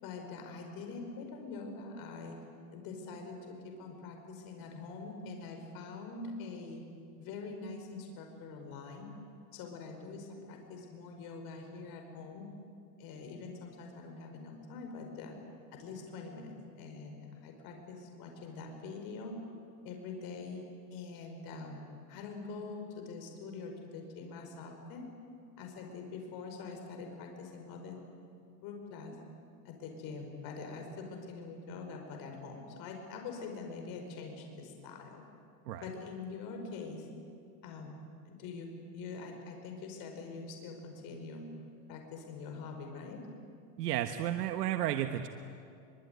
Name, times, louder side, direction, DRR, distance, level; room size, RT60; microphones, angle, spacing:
voice 1, 0.0-2.4 2.7-6.8 7.2-9.1 9.5-12.5 13.0-15.4 15.7-19.4 19.8-20.6 20.9-25.1 25.6-28.0 28.6-29.2 29.6-35.2 35.8-37.1 37.6-41.5 41.9-43.2, left 4 dB, 50° left, 3 dB, 5.3 m, -44 dB
voice 2, 43.8-45.3, right 12 dB, 90° right, 7 dB, 1.4 m, -32 dB
24.0 x 23.5 x 9.4 m, 2.4 s
supercardioid pair, 145°, 46 cm